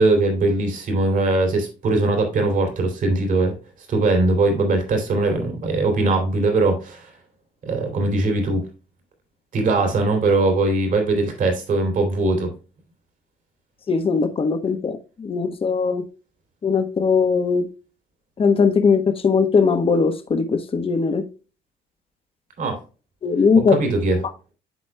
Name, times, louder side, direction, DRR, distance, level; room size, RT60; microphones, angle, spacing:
voice 1, 0.0-3.5 3.9-7.1 7.6-8.6 9.5-12.5 22.6-22.8 23.8-24.2, right 2 dB, 50° right, 3 dB, 2.8 m, -20 dB
voice 2, 13.9-16.0 16.6-17.7 18.4-21.2 23.2-23.8, left 5 dB, 35° left, 8 dB, 1.2 m, -19 dB
12.5 x 4.2 x 2.2 m, 0.33 s
cardioid pair, 110°, 17 cm